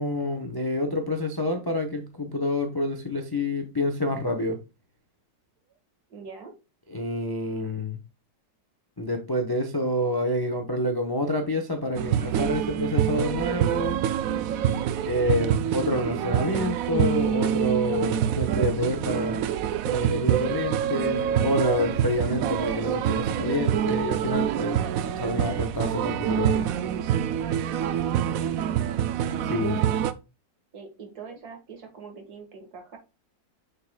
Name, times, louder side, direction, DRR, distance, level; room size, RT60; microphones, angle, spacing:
voice 1, 0.0-4.6 6.9-8.0 9.0-14.0 15.0-19.5 19.8-24.8 25.2-26.7 29.4-29.8, left 1 dB, 25° left, 0.5 m, -28 dB
voice 2, 6.1-6.5 27.8-29.0 30.7-33.0, right 5 dB, 55° right, 2.1 m, -43 dB
sound 1, 11.9-30.1, right 10 dB, 75° right, 0.8 m, -26 dB
6.6 x 6.6 x 2.2 m
omnidirectional pair, 2.0 m